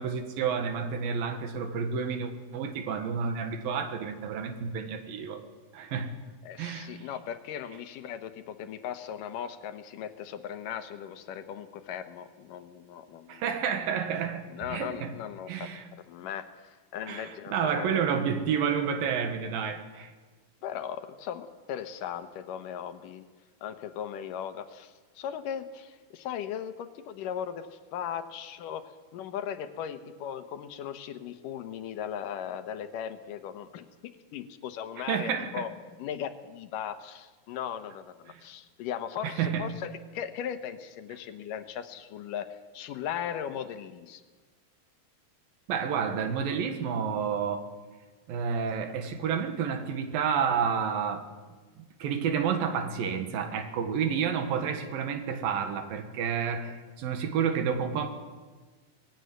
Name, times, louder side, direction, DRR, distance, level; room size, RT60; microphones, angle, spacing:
voice 1, 0.0-5.4 5.7-6.2 6.6-7.1 13.3-15.1 15.5-15.9 17.1-20.1 35.0-35.7 38.3-38.4 39.2-39.8 45.7-47.7 48.3-51.3 51.8-58.1, right 7 dB, 90° right, 7 dB, 3.4 m, -30 dB
voice 2, 6.4-13.4 14.5-15.7 16.1-17.9 20.6-23.3 23.6-27.7 27.9-33.9 34.3-35.7 36.0-42.5 42.7-44.2, left 9 dB, 75° left, 10 dB, 2.6 m, -38 dB
19.5 x 16.0 x 9.3 m, 1.4 s
omnidirectional pair, 4.0 m